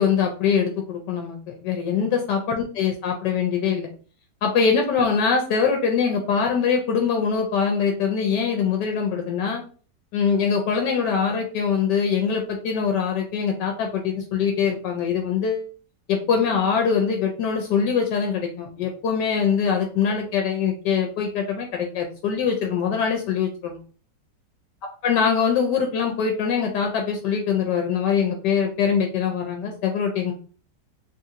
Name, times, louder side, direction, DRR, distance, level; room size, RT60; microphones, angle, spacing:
voice 1, 0.0-3.9 4.4-9.6 10.1-15.7 16.1-23.8 25.0-30.3, left 6 dB, 80° left, 3 dB, 1.2 m, -23 dB
3.2 x 2.5 x 2.7 m, 0.40 s
omnidirectional pair, 1.9 m